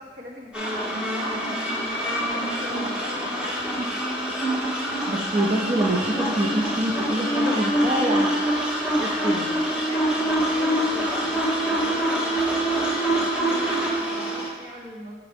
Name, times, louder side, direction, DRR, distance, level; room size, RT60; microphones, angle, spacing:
voice 1, 0.0-4.2 7.4-8.3 8.9-9.5 9.8-15.2, equal, 50° right, -2 dB, 1.4 m, -39 dB
sound 1, 0.5-14.5, right 1 dB, 5° right, 1.2 m, -25 dB
voice 2, 5.1-8.3 8.9-9.5, right 1 dB, 35° right, -4 dB, 0.6 m, -26 dB
9.2 x 4.7 x 3.5 m, 1.3 s
head